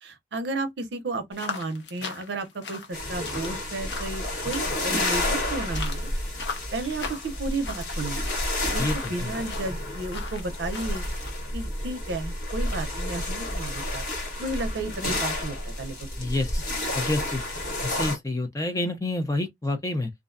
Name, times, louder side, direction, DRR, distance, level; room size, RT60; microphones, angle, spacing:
voice 1, 0.0-6.1 6.7-8.2 8.7-11.0 11.5-14.0 14.4-16.4 17.1-17.2, right 2 dB, 70° right, 0.6 m, -33 dB
sound 1, 1.3-11.3, left 4 dB, 70° left, 0.6 m, -40 dB
sound 2, 2.9-18.2, left 1 dB, 45° left, 1.2 m, -30 dB
voice 2, 8.8-9.3 16.2-16.6 16.9-17.4 17.8-20.1, left 2 dB, 20° left, 0.4 m, -28 dB
2.4 x 2.1 x 2.4 m
head